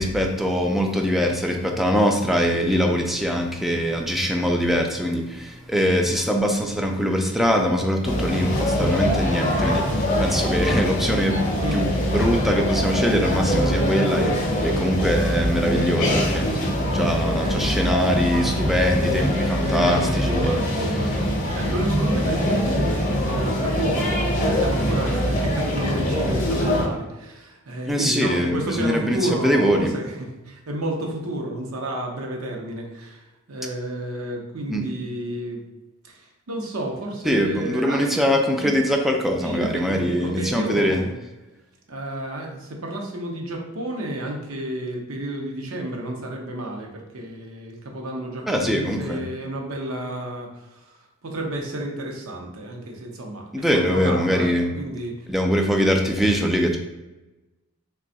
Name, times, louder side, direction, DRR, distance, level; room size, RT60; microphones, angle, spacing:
voice 1, 0.0-11.5 11.7-20.6 21.0-21.2 21.7-22.1 27.9-29.9 34.7-34.8 37.2-41.0 48.5-49.2 53.5-54.7 55.3-56.8, equal, ahead, 2 dB, 0.3 m, -23 dB
sound 1, 8.0-26.9, equal, 40° left, 0.7 m, -23 dB
voice 2, 18.1-18.5 19.7-35.6 36.0-38.1 38.6-38.8 39.4-41.1 41.9-55.1, right 1 dB, 80° right, 1 dB, 0.7 m, -31 dB
3.3 x 2.3 x 3.9 m, 1.0 s
head